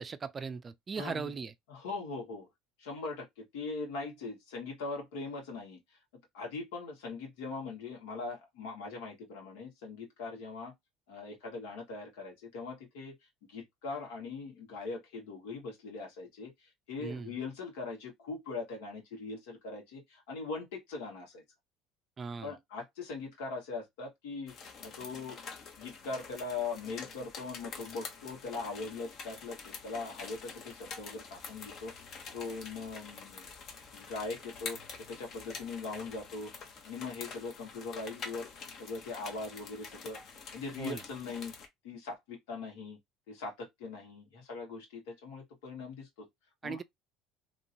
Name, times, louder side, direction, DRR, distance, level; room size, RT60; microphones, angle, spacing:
voice 1, 0.0-1.5 17.0-17.3 22.2-22.5 40.8-41.0 46.6-46.8, right 5 dB, 30° right, 0.3 m, -38 dB
voice 2, 1.0-1.3 1.7-2.5 2.8-5.8 6.3-10.7 11.1-13.1 13.5-16.5 16.9-21.4 22.4-24.5 24.8-25.4 25.8-31.9 32.3-33.5 33.9-34.8 35.1-36.5 36.8-38.5 38.8-40.2 40.5-41.5 41.8-43.0 43.3-46.3 46.6-46.8, left 4 dB, 90° left, 1.6 m, -41 dB
sound 1, 24.5-41.7, left 5 dB, 50° left, 0.9 m, -47 dB
2.9 x 2.8 x 2.7 m
supercardioid pair, 105°, 0 cm